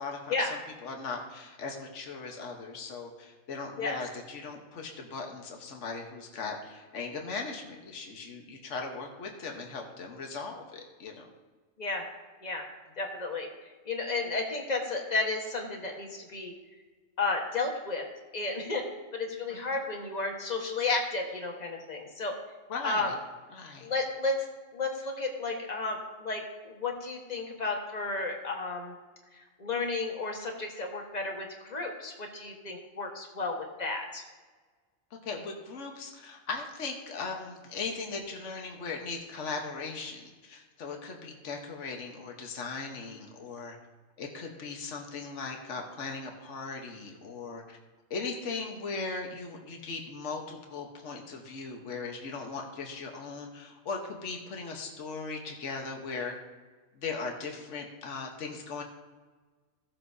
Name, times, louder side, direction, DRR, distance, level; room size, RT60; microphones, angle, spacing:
voice 1, 0.0-11.3 19.5-19.8 22.7-23.1 23.5-23.9 35.2-43.8 44.2-47.8 48.1-56.3 56.9-58.8, left 4 dB, 65° left, 2 dB, 1.5 m, -38 dB
voice 2, 13.0-13.5 13.8-16.5 17.2-18.0 18.3-18.8 19.1-22.3 22.8-23.1 23.8-24.4 24.7-28.9 29.6-34.2, left 3 dB, 30° left, 1 dB, 1.4 m, -32 dB
16.0 x 7.7 x 2.7 m, 1.3 s
omnidirectional pair, 1.4 m